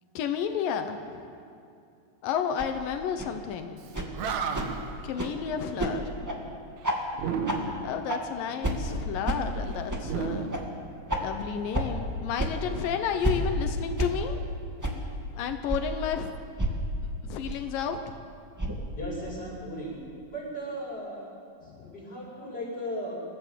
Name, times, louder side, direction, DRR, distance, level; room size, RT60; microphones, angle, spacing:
voice 1, 0.1-1.2 2.2-3.9 5.0-6.6 7.8-10.5 11.2-14.4 15.3-16.3 16.6-16.7 17.2-18.2 21.6-21.9, left 7 dB, 80° left, 7 dB, 2.6 m, -32 dB
sound 1, 2.6-2.7 3.2-3.3 3.9-4.1 4.5-4.7 5.2-5.3 5.8-5.9 6.2-6.4 6.8-7.0 7.4-7.6 8.1-8.2 8.6-8.8 9.2-9.4 9.9-10.0 10.5-10.6 11.1-11.2 11.7-11.8 12.4-12.5 13.2-13.4 14.0-14.1 14.8-14.9 15.7-15.8 16.6-16.7 17.4-17.5 18.6-18.8, right 1 dB, 10° right, 1.1 m, -28 dB
Animal, 3.8-3.9 4.1-5.0 7.1-8.0 10.0-11.3, right 5 dB, 65° right, 2.3 m, -32 dB
voice 2, 19.0-20.0 20.3-21.3 21.6-23.1, equal, 25° left, -5 dB, 8.3 m, -36 dB
26.5 x 14.5 x 7.5 m, 2.5 s
omnidirectional pair, 3.9 m